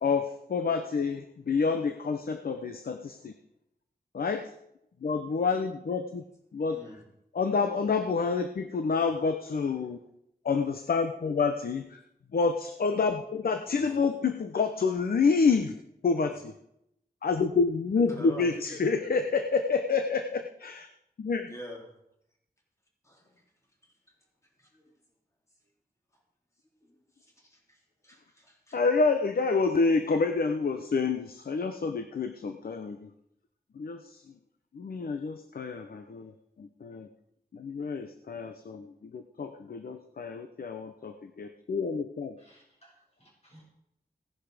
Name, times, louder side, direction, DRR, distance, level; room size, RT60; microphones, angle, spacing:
voice 1, 0.0-3.3 4.1-4.5 5.0-6.2 6.5-6.8 7.3-10.0 10.4-12.0 12.3-15.8 16.0-16.5 17.2-20.9 21.2-21.5 28.7-33.1 33.8-34.2 34.7-36.3 36.6-37.1 37.5-42.4, left 4 dB, 65° left, 7 dB, 0.9 m, -28 dB
voice 2, 13.7-14.0 16.3-16.4 18.1-18.5 21.5-21.8 23.0-23.3 24.6-24.9 26.8-28.8, equal, 20° left, -1 dB, 3.8 m, -46 dB
voice 3, 42.4-43.6, equal, 40° left, -3 dB, 7.3 m, -59 dB
17.5 x 10.5 x 5.1 m, 0.78 s
wide cardioid pair, 125°, 17 cm